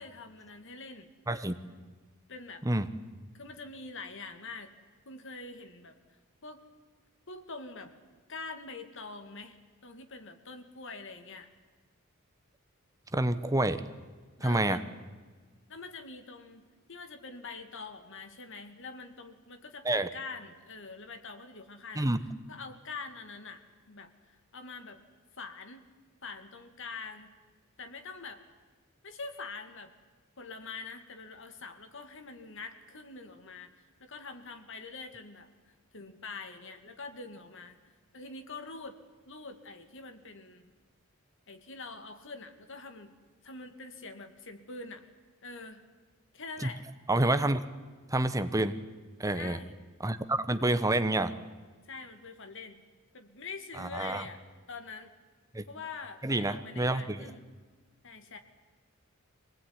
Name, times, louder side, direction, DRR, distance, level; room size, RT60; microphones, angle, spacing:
voice 1, 0.0-1.1 2.3-2.6 3.3-4.7 5.1-6.6 7.3-7.9 8.3-9.6 9.8-11.5 14.4-14.9 15.7-22.1 22.5-23.6 23.9-25.0 25.3-25.9 26.2-27.3 27.8-28.4 29.0-29.9 30.4-33.7 34.0-37.8 38.1-38.9 39.3-40.7 41.5-43.1 43.4-45.1 45.4-45.8 46.3-46.8 49.3-49.8 51.9-52.8 53.1-54.4 54.7-55.1 55.7-57.5 58.0-58.4, left 4 dB, 65° left, 7 dB, 2.5 m, -45 dB
voice 2, 13.1-13.8 14.4-14.8 19.8-20.1 22.0-22.2 46.6-46.7 47.1-47.6 48.1-48.7 49.2-49.6 50.0-51.3 53.8-54.3 55.5-55.6 56.2-57.3, right 1 dB, 15° right, 11 dB, 1.0 m, -28 dB
25.5 x 18.5 x 9.8 m, 1.5 s
head